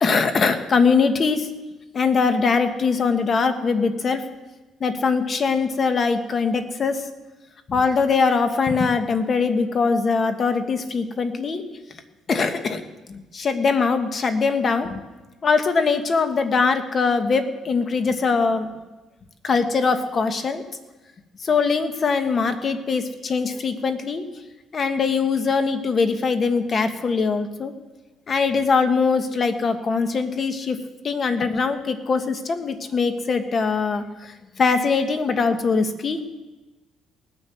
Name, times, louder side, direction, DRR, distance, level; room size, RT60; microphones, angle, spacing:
voice 1, 0.0-1.5 1.9-4.2 4.8-7.0 7.7-11.6 12.3-12.8 13.1-15.0 15.4-18.7 19.4-20.6 21.4-24.2 24.7-27.7 28.3-30.8 31.0-36.2, left 4 dB, 40° left, 8 dB, 1.5 m, -22 dB
18.0 x 10.5 x 7.0 m, 1.1 s
cardioid pair, 100°, 0 cm